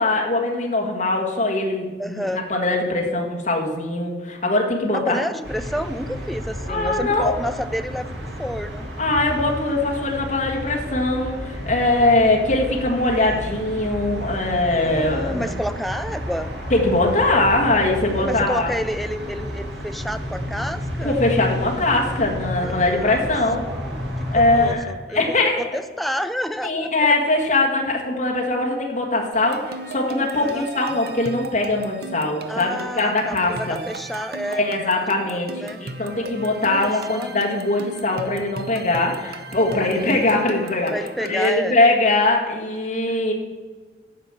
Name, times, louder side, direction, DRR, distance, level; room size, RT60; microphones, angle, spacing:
voice 1, 0.0-5.2 6.7-7.4 9.0-15.5 16.7-18.7 21.0-23.6 24.3-25.8 26.6-33.8 34.5-40.9 41.2-43.3, left 2 dB, 40° left, 0 dB, 1.4 m, -21 dB
voice 2, 2.0-2.4 4.9-8.1 8.4-8.9 14.8-16.5 18.2-21.2 22.5-27.1 30.4-30.7 32.5-34.6 35.2-35.8 36.6-37.4 40.9-41.8 43.1-43.2, equal, ahead, 9 dB, 0.4 m, -30 dB
sound 1, 5.4-24.7, equal, 75° right, 2.0 m, -31 dB
sound 2, 29.3-41.6, right 2 dB, 60° right, 0.7 m, -37 dB
9.4 x 6.0 x 7.4 m, 1.4 s
head